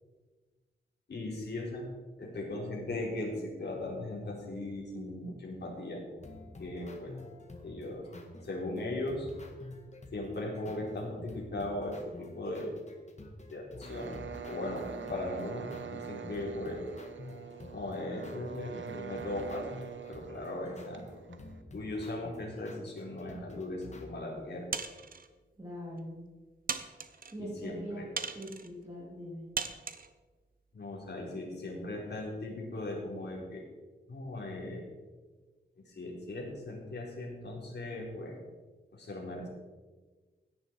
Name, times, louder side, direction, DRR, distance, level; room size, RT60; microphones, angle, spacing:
voice 1, 1.1-1.9 2.2-6.0 6.6-7.1 7.6-8.1 8.4-9.3 10.1-12.7 13.5-16.8 17.7-19.7 20.1-21.0 21.7-24.7 27.4-28.1 30.7-33.6 34.1-34.9 35.8-38.4 38.9-39.5, left 2 dB, 55° left, -2 dB, 4.2 m, -38 dB
sound 1, 6.2-24.0, left 2 dB, 35° left, 1.9 m, -49 dB
sound 2, 13.9-21.6, right 9 dB, 70° right, 1.0 m, -45 dB
sound 3, 24.7-25.3 26.0-26.1 26.7-27.3 28.2-28.7 29.6-30.1, right 5 dB, 45° right, 0.9 m, -37 dB
voice 2, 25.6-26.2 27.3-28.0 28.3-29.5, equal, 20° right, -6 dB, 3.2 m, -42 dB
17.0 x 10.5 x 4.7 m, 1.3 s
wide cardioid pair, 175°, 20 cm